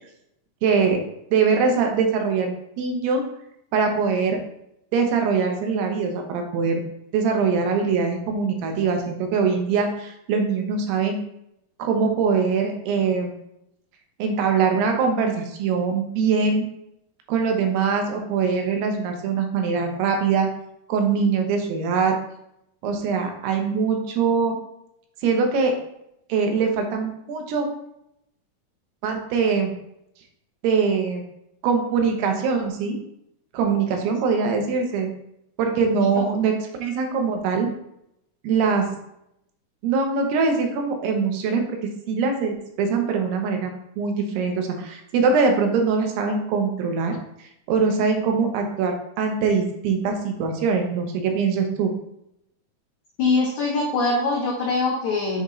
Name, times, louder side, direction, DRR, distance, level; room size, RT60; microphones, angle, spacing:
voice 1, 0.6-1.0 1.3-3.2 3.7-4.4 4.9-6.8 7.1-11.2 11.8-13.3 14.2-16.7 17.3-20.5 20.9-22.2 22.8-24.6 25.2-25.7 26.3-27.7 29.0-29.7 30.6-31.2 31.6-33.0 33.5-35.1 35.6-36.5 36.8-37.7 38.4-38.9 39.8-41.8 42.1-51.9, right 5 dB, 80° right, 3 dB, 2.9 m, -22 dB
voice 2, 53.2-55.4, left 3 dB, 90° left, -2 dB, 1.6 m, -23 dB
7.9 x 3.8 x 3.1 m, 0.78 s
omnidirectional pair, 4.6 m